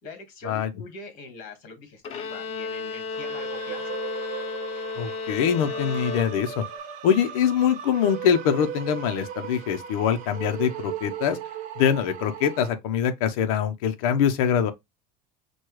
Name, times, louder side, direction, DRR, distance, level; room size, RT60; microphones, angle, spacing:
voice 1, 0.0-4.0, left 3 dB, 50° left, 1.8 m, -43 dB
Bowed string instrument, 2.0-6.8, left 4 dB, 35° left, 0.6 m, -33 dB
sound 1, 3.1-12.7, right 9 dB, 45° right, 0.8 m, -37 dB
voice 2, 5.0-6.6 7.0-11.4 11.8-14.7, left 8 dB, 80° left, 0.7 m, -23 dB
6.1 x 2.3 x 3.1 m
supercardioid pair, 150°, 18 cm